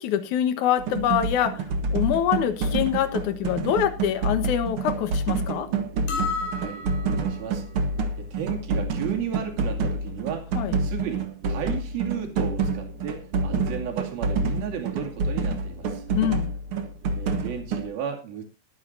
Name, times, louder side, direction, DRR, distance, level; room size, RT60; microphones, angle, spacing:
voice 1, 0.0-1.7 1.9-5.7 10.6-10.7 16.1-16.5, left 10 dB, 65° left, 2.2 m, -25 dB
sound 1, 0.8-17.9, right 3 dB, 80° right, 1.2 m, -28 dB
sound 2, 6.1-7.4, left 4 dB, 90° left, 5.3 m, -31 dB
voice 2, 6.5-6.9 7.2-7.6 8.2-16.0 17.2-18.4, right 8 dB, 65° right, 4.2 m, -34 dB
21.5 x 9.2 x 2.7 m
omnidirectional pair, 4.7 m